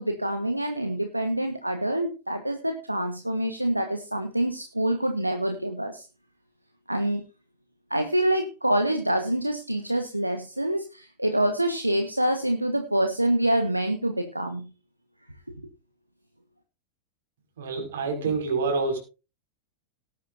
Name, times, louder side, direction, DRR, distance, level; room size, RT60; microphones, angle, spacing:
voice 1, 0.0-6.0 6.9-7.2 7.9-14.7, right 1 dB, 85° right, 7 dB, 1.3 m, -26 dB
voice 2, 17.6-19.0, right 4 dB, 60° right, 4 dB, 5.5 m, -27 dB
18.5 x 10.0 x 2.6 m, 0.31 s
figure-of-eight pair, 90°, 0 cm